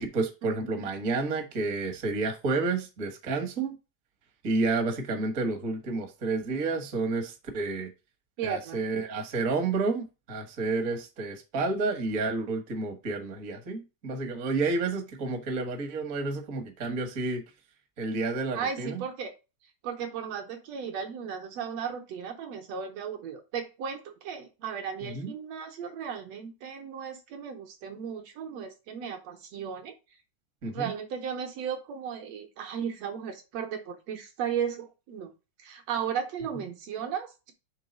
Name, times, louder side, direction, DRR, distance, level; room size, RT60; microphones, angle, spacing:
voice 1, 0.0-3.7 4.4-7.9 8.4-17.4 18.0-19.0 25.0-25.3 30.6-30.9 36.5-36.6, right 3 dB, 50° right, 1.0 m, -30 dB
voice 2, 8.4-8.8 18.5-19.3 19.8-29.9 30.7-35.3 35.6-37.5, right 7 dB, 70° right, 1.8 m, -35 dB
5.4 x 3.7 x 5.1 m
omnidirectional pair, 3.4 m